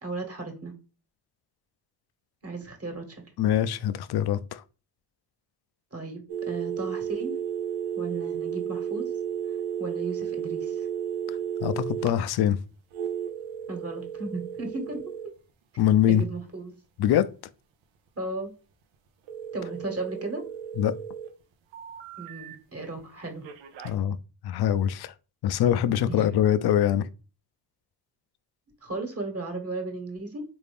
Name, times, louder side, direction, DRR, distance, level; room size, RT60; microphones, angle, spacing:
voice 1, 0.0-0.8 2.4-3.2 5.9-7.3 7.9-9.1 9.8-10.9 13.7-15.0 16.1-16.7 18.2-18.5 19.5-20.4 22.2-23.5 26.0-26.3 28.8-30.4, right 2 dB, 30° right, 1.4 m, -35 dB
voice 2, 3.4-4.6 11.6-12.6 15.8-16.2 17.0-17.3 20.8-20.9 23.8-24.2 24.4-25.1 25.4-27.1, left 10 dB, 60° left, 0.5 m, -23 dB
sound 1, 6.3-12.1 12.9-15.3 19.3-21.3 21.7-22.6 23.4-23.9, right 9 dB, 80° right, 0.7 m, -33 dB
3.6 x 2.6 x 3.4 m
supercardioid pair, 55°, 44 cm